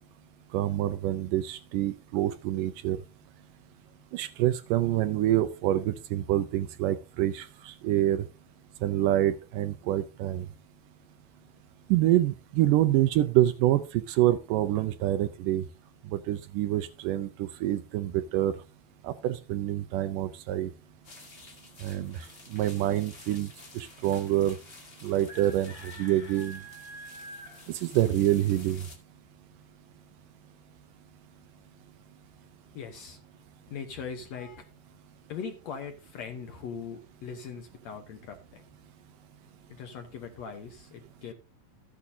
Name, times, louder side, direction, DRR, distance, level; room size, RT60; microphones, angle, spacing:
voice 1, 0.5-3.0 4.1-8.2 8.8-10.5 11.9-15.6 16.1-18.5 19.0-20.7 21.8-22.3 22.5-23.5 23.8-24.6 25.0-26.6 27.7-28.8, right 14 dB, 80° right, 12 dB, 2.1 m, -26 dB
sound 1, 21.0-29.0, left 1 dB, 35° left, 0.9 m, -48 dB
voice 2, 32.7-33.2 33.7-34.7 35.3-38.7 39.7-41.3, left 6 dB, 65° left, 6 dB, 1.8 m, -40 dB
14.0 x 8.5 x 2.7 m, 0.31 s
omnidirectional pair, 4.1 m